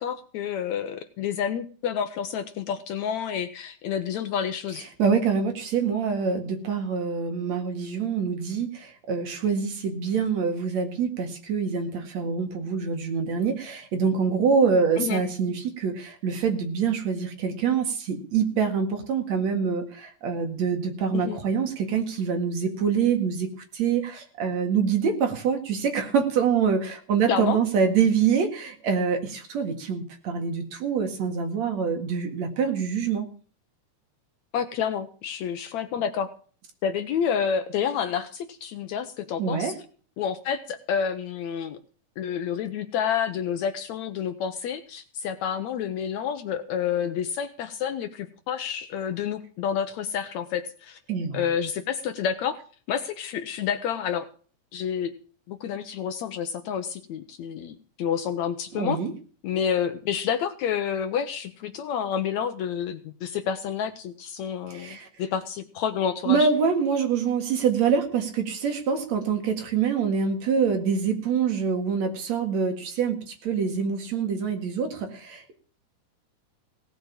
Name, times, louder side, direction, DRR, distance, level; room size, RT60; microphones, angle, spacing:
voice 1, 0.0-4.9 15.0-15.2 21.1-21.4 27.3-27.6 34.5-36.3 36.8-39.8 40.2-41.8 42.2-51.0 51.3-52.6 52.9-54.3 54.7-55.1 55.5-59.0 59.4-66.5, left 8 dB, 70° left, 10 dB, 1.9 m, -29 dB
voice 2, 5.0-23.5 23.7-33.3 39.4-39.7 51.1-51.4 58.7-59.1 64.7-65.1 66.3-75.6, right 6 dB, 60° right, 6 dB, 3.0 m, -25 dB
17.5 x 7.1 x 7.2 m, 0.41 s
omnidirectional pair, 3.7 m